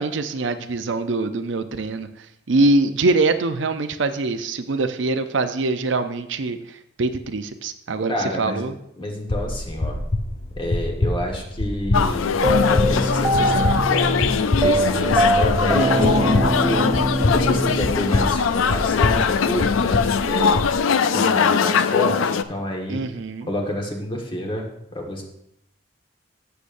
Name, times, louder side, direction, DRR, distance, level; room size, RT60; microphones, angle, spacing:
voice 1, 0.0-2.1 2.5-6.6 7.0-8.7 22.9-23.5, right 2 dB, 65° right, 9 dB, 0.6 m, -23 dB
voice 2, 8.1-8.7 9.0-10.0 10.6-16.8 17.3-20.6 21.1-23.0 23.5-24.6 24.9-25.2, equal, 25° left, 1 dB, 1.5 m, -29 dB
sound 1, 9.3-20.7, left 2 dB, 50° left, 0.8 m, -26 dB
sound 2, 11.9-22.4, left 6 dB, 85° left, 0.4 m, -21 dB
sound 3, 12.4-18.6, right 1 dB, 15° right, 0.5 m, -23 dB
15.0 x 6.8 x 2.6 m, 0.78 s
head